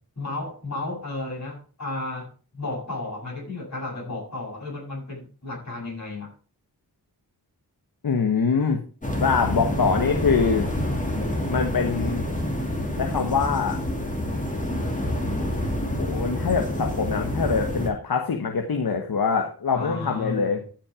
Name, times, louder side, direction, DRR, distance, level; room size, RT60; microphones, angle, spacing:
voice 1, 0.2-6.3 19.7-20.6, left 2 dB, 45° left, 7.3 m, -33 dB
voice 2, 8.0-8.8 9.2-10.7 11.5-12.3 13.0-13.8 15.8-20.6, left 5 dB, 60° left, 1.3 m, -24 dB
sound 1, 9.0-17.9, left 1 dB, 20° left, 2.6 m, -27 dB
14.0 x 6.0 x 5.0 m
wide cardioid pair, 95°, 39 cm